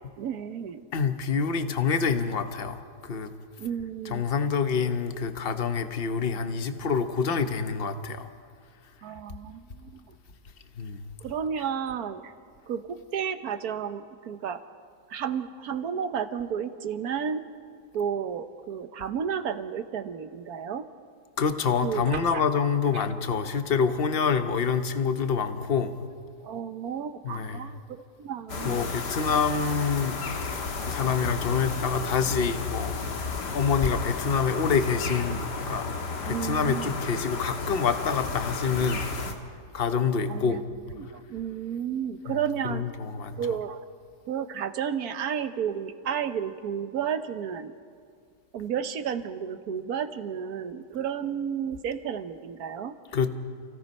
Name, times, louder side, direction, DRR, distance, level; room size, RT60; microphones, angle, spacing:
voice 1, 0.2-0.8 3.6-4.2 9.0-10.1 11.2-12.3 12.7-14.6 15.1-17.4 17.9-20.8 21.8-22.4 22.9-23.0 26.4-28.9 36.2-37.0 40.3-40.6 41.0-42.8 43.3-43.8 44.3-47.7 48.5-52.9, right 8 dB, 65° right, 11 dB, 1.4 m, -32 dB
voice 2, 0.9-3.3 4.0-8.3 10.8-11.0 21.4-25.9 27.2-27.6 28.6-30.2 30.9-35.9 36.2-39.1 39.7-40.6 42.3-42.4 42.6-43.4 53.1-53.3, left 6 dB, 40° left, 9 dB, 1.0 m, -27 dB
sound 1, 28.5-39.3, left 4 dB, 80° left, 2.2 m, -33 dB
29.0 x 16.5 x 5.4 m, 2.1 s
omnidirectional pair, 1.8 m